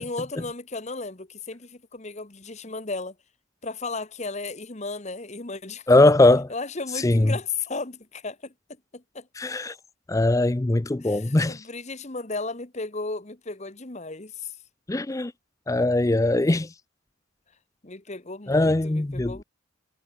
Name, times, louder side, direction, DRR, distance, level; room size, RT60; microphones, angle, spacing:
voice 1, 0.0-3.1 3.6-6.1 6.5-8.5 8.9-9.3 11.0-14.5 17.8-19.4, left 3 dB, 35° left, 1.3 m, -35 dB
voice 2, 5.9-6.5 6.9-7.3 9.4-9.7 10.1-11.6 14.9-15.3 15.7-16.7 18.5-19.4, left 2 dB, 15° left, 0.4 m, -20 dB
head